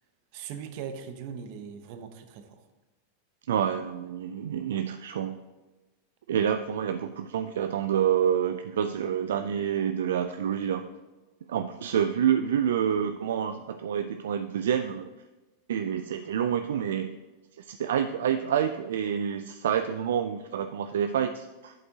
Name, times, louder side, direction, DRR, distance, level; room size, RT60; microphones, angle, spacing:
voice 1, 0.3-2.7, right 7 dB, 60° right, 8 dB, 0.8 m, -40 dB
voice 2, 3.5-5.4 6.3-10.8 11.5-15.1 15.7-17.1 17.6-21.7, right 9 dB, 75° right, 8 dB, 0.3 m, -28 dB
11.0 x 5.4 x 2.8 m, 1.1 s
hypercardioid pair, 105°, 0 cm